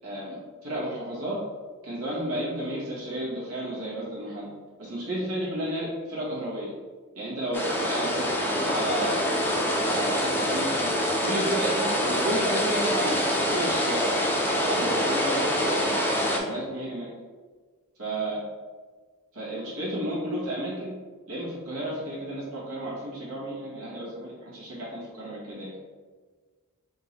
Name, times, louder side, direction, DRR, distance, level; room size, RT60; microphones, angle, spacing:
voice 1, 0.0-1.4 1.8-4.5 4.8-6.7 7.1-9.2 9.8-10.9 11.2-14.1 14.5-16.0 16.3-17.1 18.0-18.5 19.3-21.0 21.3-25.7, right 1 dB, 75° right, -7 dB, 1.4 m, -32 dB
sound 1, 7.5-16.4, equal, 10° left, 0.6 m, -25 dB
3.8 x 2.7 x 4.1 m, 1.4 s
head